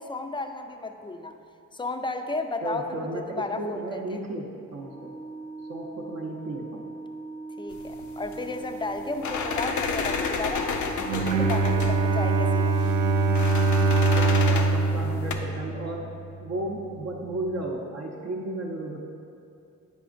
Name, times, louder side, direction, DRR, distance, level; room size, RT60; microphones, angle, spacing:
voice 1, 0.0-1.4 1.7-3.1 3.4-4.0 7.6-12.9, left 2 dB, 15° left, 6 dB, 0.4 m, -33 dB
voice 2, 2.6-5.1 5.7-6.9 14.1-16.1 16.4-19.0, right 1 dB, 50° right, -2 dB, 0.7 m, -34 dB
Organ, 4.7-15.6, right 3 dB, 30° right, 1.0 m, -40 dB
sound 1, 7.7-15.3, left 5 dB, 60° left, 0.6 m, -32 dB
Bowed string instrument, 11.0-16.3, right 3 dB, 80° right, 0.5 m, -23 dB
7.9 x 4.9 x 2.5 m, 2.6 s
hypercardioid pair, 45°, 34 cm